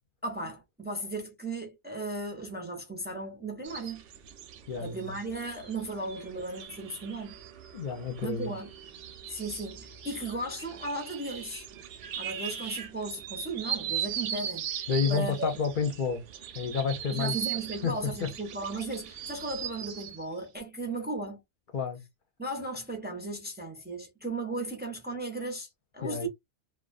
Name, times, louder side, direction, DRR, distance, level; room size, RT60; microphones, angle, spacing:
voice 1, 0.2-4.0 4.8-7.4 8.2-8.7 9.3-11.7 12.1-15.5 17.1-21.4 22.4-26.3, right 2 dB, 15° right, 0.4 m, -36 dB
sound 1, 3.6-20.2, right 9 dB, 85° right, 0.9 m, -39 dB
voice 2, 4.7-5.2 7.7-8.5 14.9-16.2 16.6-17.3 17.8-18.3 21.7-22.0 26.0-26.3, left 6 dB, 55° left, 0.7 m, -30 dB
2.4 x 2.1 x 2.4 m
omnidirectional pair, 1.2 m